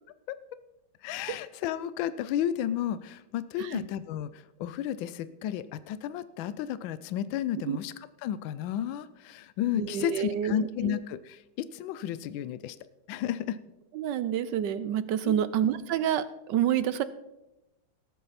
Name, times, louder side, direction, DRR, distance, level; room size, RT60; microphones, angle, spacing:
voice 1, 1.0-7.9 8.2-12.8 13.1-13.6 15.2-15.5, left 10 dB, 85° left, 15 dB, 1.3 m, -32 dB
voice 2, 9.7-11.0 13.9-17.0, right 10 dB, 75° right, 14 dB, 1.2 m, -28 dB
19.0 x 8.3 x 4.2 m, 0.92 s
omnidirectional pair, 2.1 m